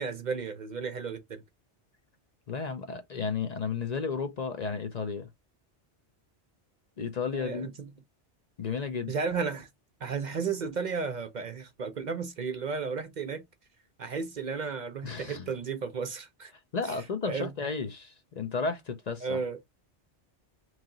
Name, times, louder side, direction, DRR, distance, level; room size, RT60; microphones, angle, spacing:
voice 1, 0.0-1.4 7.3-7.9 9.1-9.7 10.0-13.4 14.0-16.5 16.9-17.0 17.2-17.5 19.2-19.6, right 5 dB, 50° right, 0.6 m, -33 dB
voice 2, 2.5-5.3 7.0-7.7 8.6-9.1 15.0-15.5 16.7-19.4, left 5 dB, 45° left, 0.6 m, -33 dB
3.1 x 2.8 x 3.7 m
omnidirectional pair, 1.2 m